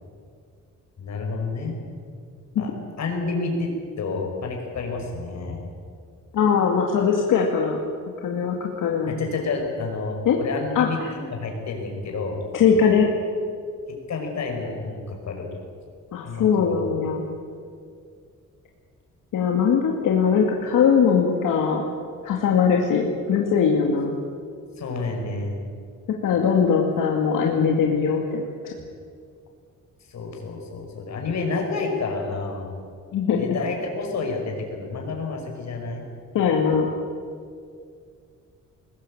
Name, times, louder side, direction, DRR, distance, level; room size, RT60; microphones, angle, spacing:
voice 1, 1.0-1.7 2.6-2.7 3.0-3.7 4.0-5.7 9.1-12.4 14.1-15.5 16.2-16.8 24.8-25.6 30.1-32.7 33.4-36.0, left 3 dB, 55° left, 1 dB, 5.7 m, -29 dB
voice 2, 6.3-7.8 8.2-9.2 10.3-10.4 10.8-11.1 12.5-13.1 16.1-17.2 19.3-21.8 22.2-24.2 26.2-28.5 33.1-33.4 36.3-36.9, left 6 dB, 80° left, 0 dB, 2.4 m, -21 dB
22.0 x 20.0 x 8.8 m, 2.2 s
wide cardioid pair, 160°, 32 cm